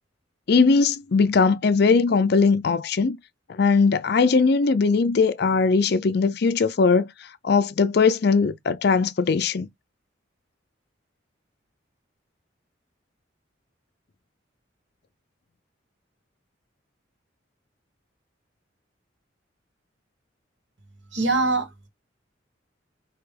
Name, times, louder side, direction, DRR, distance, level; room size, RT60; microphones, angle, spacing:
voice 1, 0.5-3.2 3.5-7.1 7.4-9.7, left 4 dB, 55° left, 0.4 m, -20 dB
voice 2, 21.1-21.9, right 3 dB, 70° right, 1.2 m, -23 dB
4.8 x 2.9 x 3.2 m
head